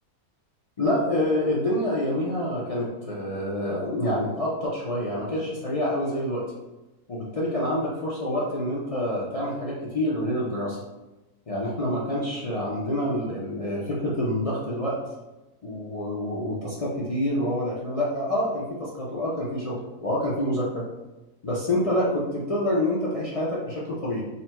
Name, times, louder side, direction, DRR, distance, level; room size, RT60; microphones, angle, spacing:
voice 1, 0.8-6.4 7.1-10.8 11.5-15.0 15.6-20.8 21.4-24.2, left 1 dB, 65° left, -6 dB, 0.3 m, -27 dB
4.0 x 2.1 x 4.3 m, 1.0 s
omnidirectional pair, 1.5 m